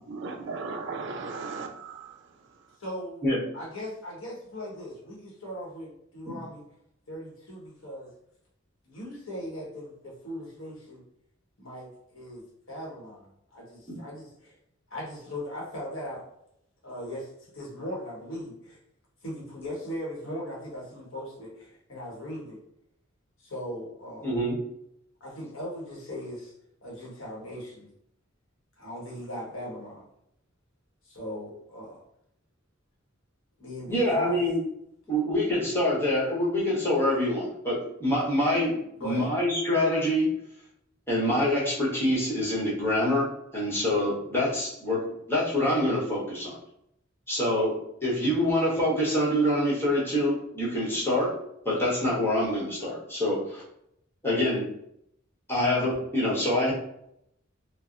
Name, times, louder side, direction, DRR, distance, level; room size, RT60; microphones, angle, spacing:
voice 1, 0.1-2.2, right 4 dB, 60° right, 4 dB, 0.4 m, -36 dB
voice 2, 2.8-3.2 3.5-6.6 7.1-8.1 8.9-11.0 11.6-14.5 14.9-16.2 16.8-18.8 19.2-22.6 23.4-24.4 25.2-26.5 26.8-27.9 28.8-30.1 31.0-32.0 33.6-34.4 39.0-39.3, equal, 85° left, -4 dB, 1.1 m, -39 dB
voice 3, 24.2-24.6 33.9-34.6 35.1-40.3 41.1-46.6 47.3-51.3 51.6-53.6 54.2-54.7 55.5-56.7, left 1 dB, 10° left, -6 dB, 0.9 m, -26 dB
3.2 x 2.0 x 2.4 m, 0.76 s
head